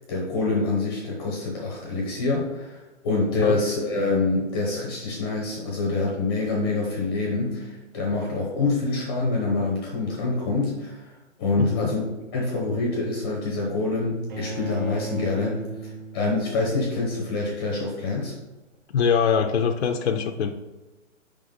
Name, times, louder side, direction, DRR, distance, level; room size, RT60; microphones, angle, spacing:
voice 1, 0.1-11.1 11.4-12.0 12.3-18.3, left 3 dB, 20° left, -2 dB, 0.7 m, -26 dB
voice 2, 11.6-11.9 18.9-20.5, left 6 dB, 60° left, 4 dB, 0.6 m, -23 dB
Bowed string instrument, 14.3-17.4, right 2 dB, 40° right, 0.7 m, -36 dB
5.1 x 3.9 x 5.2 m, 1.2 s
hypercardioid pair, 155°, 37 cm